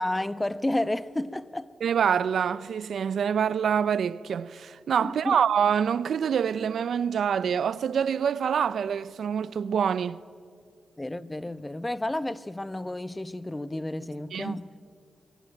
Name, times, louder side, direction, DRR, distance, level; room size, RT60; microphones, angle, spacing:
voice 1, 0.0-1.7 5.0-5.4 11.0-14.7, left 1 dB, 15° left, 1.1 m, -31 dB
voice 2, 1.8-10.2 14.3-14.6, right 7 dB, 75° right, 0.6 m, -26 dB
25.0 x 23.5 x 9.1 m
cardioid pair, 55°, 0 cm